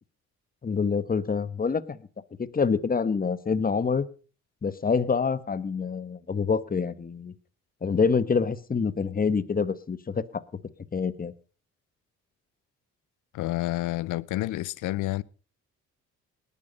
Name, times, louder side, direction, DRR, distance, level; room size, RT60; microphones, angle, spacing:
voice 1, 0.6-2.0 2.4-4.1 4.6-7.3 7.8-10.4 10.9-11.3, left 5 dB, 30° left, 1.3 m, -26 dB
voice 2, 13.3-15.2, left 16 dB, 85° left, 0.7 m, -29 dB
19.5 x 11.0 x 5.3 m
cardioid pair, 90°, 30 cm